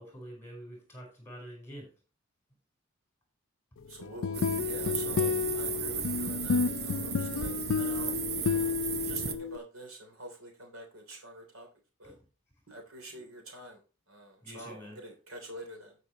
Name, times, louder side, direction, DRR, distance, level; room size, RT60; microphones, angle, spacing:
voice 1, 0.0-1.9 12.0-12.1 14.4-15.0, equal, 10° left, 1 dB, 4.7 m, -46 dB
voice 2, 3.9-8.7 9.0-11.7 12.0-12.2 12.7-13.8 14.1-16.0, right 1 dB, 80° right, 3 dB, 3.2 m, -47 dB
sound 1, 4.0-9.6, left 5 dB, 65° left, 0.4 m, -31 dB
sound 2, 4.3-9.3, right 7 dB, 50° right, 0.8 m, -35 dB
17.0 x 5.9 x 3.0 m, 0.32 s
head